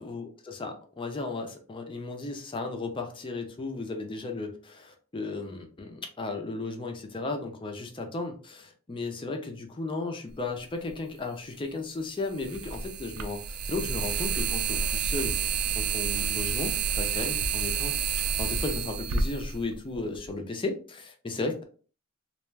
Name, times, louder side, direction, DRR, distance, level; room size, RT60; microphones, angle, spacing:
voice 1, 0.0-15.3 15.8-21.6, left 3 dB, 25° left, 4 dB, 0.4 m, -35 dB
sound 1, 10.9-11.0 12.3-20.3, right 6 dB, 80° right, 0.4 m, -29 dB
2.4 x 2.1 x 3.2 m, 0.41 s
head